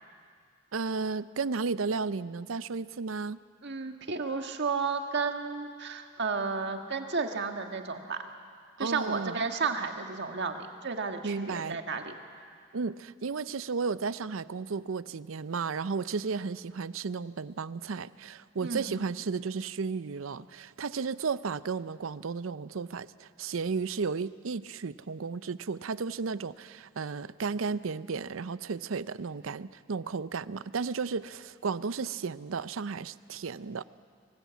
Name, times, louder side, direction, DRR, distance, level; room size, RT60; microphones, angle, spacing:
voice 1, 0.7-3.4 8.8-9.4 11.2-11.8 12.7-33.8, right 5 dB, 75° right, 16 dB, 0.6 m, -33 dB
voice 2, 3.6-8.3 8.8-12.1 18.6-19.0, right 4 dB, 60° right, 5 dB, 1.7 m, -32 dB
24.0 x 19.5 x 8.3 m, 2.1 s
head